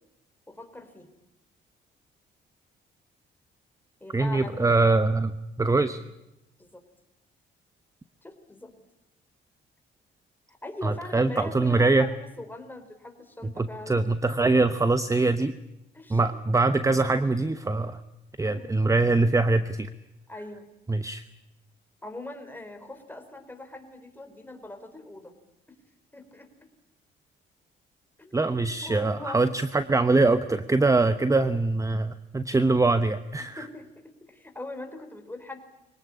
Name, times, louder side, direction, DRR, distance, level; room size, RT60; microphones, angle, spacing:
voice 1, 0.5-1.1 4.0-4.8 5.7-6.0 6.6-6.8 8.2-8.7 10.6-14.1 15.9-16.3 18.4-18.8 20.3-20.7 22.0-25.3 26.1-26.7 28.2-29.6 33.6-35.6, left 2 dB, 10° left, 6 dB, 4.3 m, -41 dB
voice 2, 4.1-6.0 10.8-12.1 13.4-15.5 16.1-18.0 18.4-19.9 20.9-21.2 28.3-33.7, right 3 dB, 15° right, 12 dB, 1.0 m, -23 dB
23.5 x 18.0 x 9.9 m, 0.93 s
cardioid pair, 90°, 20 cm